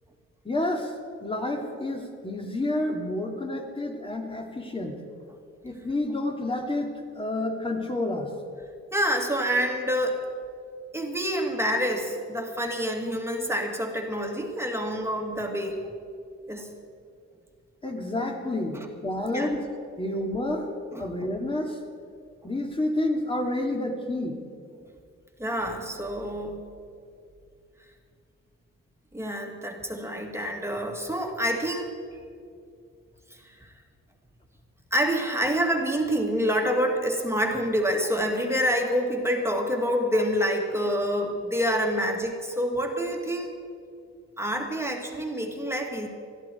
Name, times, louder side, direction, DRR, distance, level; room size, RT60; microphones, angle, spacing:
voice 1, 0.4-0.9 1.2-5.0 5.6-8.3 17.8-19.7 20.0-20.7 21.0-21.8 22.4-24.4, left 1 dB, 20° left, 2 dB, 2.7 m, -29 dB
voice 2, 8.9-10.2 10.9-15.8 16.5-16.7 19.3-19.6 20.9-21.1 25.4-26.6 29.1-31.9 33.4-33.5 34.9-43.5 44.4-46.1, equal, 10° right, 2 dB, 2.5 m, -27 dB
21.5 x 14.0 x 4.6 m, 2.3 s
cardioid pair, 90°, 30 cm